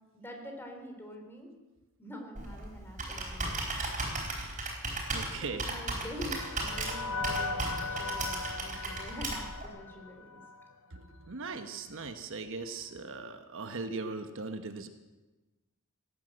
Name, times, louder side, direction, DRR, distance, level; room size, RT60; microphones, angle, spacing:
voice 1, 0.1-1.5 2.0-3.8 5.4-10.4, equal, 10° left, 3 dB, 3.2 m, -46 dB
Computer keyboard, 2.3-9.7, right 2 dB, 35° right, 4.6 m, -36 dB
voice 2, 5.1-5.6 10.9-14.9, right 3 dB, 60° right, 7 dB, 1.1 m, -39 dB
sound 1, 5.4-10.8, left 3 dB, 70° left, 0.8 m, -39 dB
17.5 x 10.5 x 7.9 m, 1.2 s
head